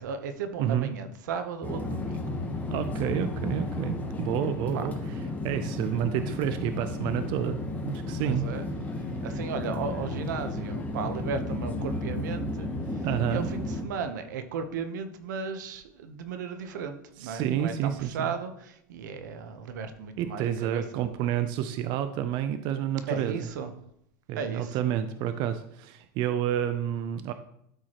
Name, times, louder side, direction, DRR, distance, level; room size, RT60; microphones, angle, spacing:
voice 1, 0.0-2.4 4.7-4.9 8.2-8.8 9.2-21.1 23.1-23.7 24.3-24.8, right 5 dB, 90° right, 8 dB, 0.9 m, -35 dB
voice 2, 0.6-0.9 2.7-4.9 5.4-8.4 13.0-13.5 17.2-18.3 20.2-23.4 24.3-27.3, right 10 dB, 50° right, 10 dB, 0.5 m, -29 dB
sound 1, 1.6-13.8, left 2 dB, 15° left, 1.2 m, -33 dB
12.5 x 4.7 x 3.0 m, 0.73 s
supercardioid pair, 130°, 10 cm